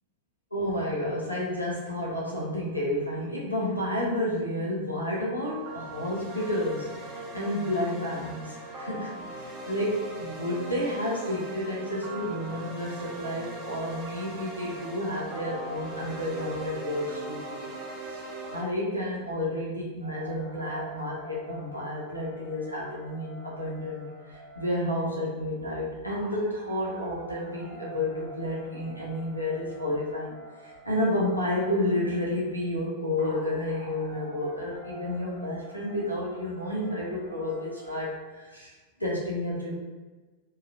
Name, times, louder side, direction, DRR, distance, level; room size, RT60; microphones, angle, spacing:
voice 1, 0.5-17.7 18.1-18.2 18.5-30.3 30.6-38.7 39.0-39.7, left 1 dB, 90° left, -5 dB, 0.6 m, -31 dB
sound 1, 5.5-18.6, right 2 dB, 30° right, 0.7 m, -40 dB
sound 2, 20.0-38.1, right 1 dB, 80° right, 0.9 m, -47 dB
3.0 x 2.3 x 2.4 m, 1.3 s
figure-of-eight pair, 90°, 0 cm